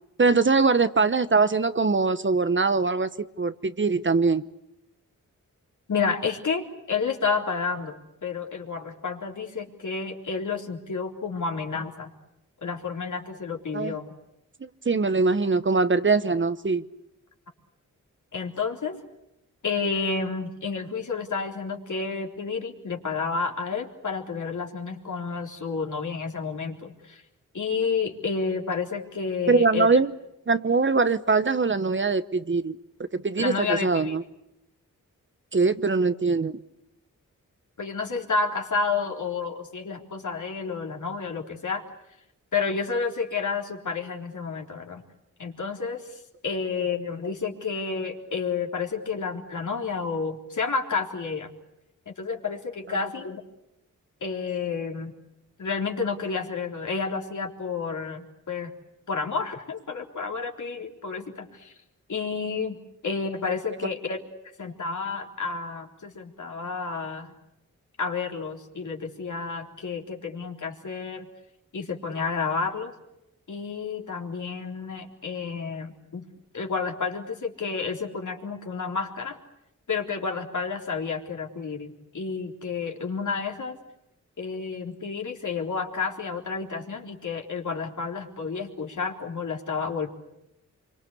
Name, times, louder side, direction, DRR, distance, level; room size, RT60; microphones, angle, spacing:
voice 1, 0.2-4.4 13.7-13.9 14.8-16.8 29.5-30.1 30.5-32.8 33.1-34.2 35.5-36.6, right 4 dB, 35° right, 13 dB, 1.0 m, -22 dB
voice 2, 5.9-6.6 6.9-12.1 12.6-14.2 18.3-19.0 19.6-27.2 27.5-30.0 33.4-34.2 37.8-41.8 42.5-45.0 45.4-51.5 52.1-53.4 54.2-55.1 55.6-58.7 59.1-61.7 62.1-64.2 64.6-67.3 68.0-71.2 71.7-72.9 73.5-76.3 76.5-79.4 79.9-83.8 84.4-90.1, left 5 dB, 65° left, 2 dB, 3.7 m, -30 dB
26.5 x 24.0 x 8.5 m, 0.87 s
cardioid pair, 70°, 32 cm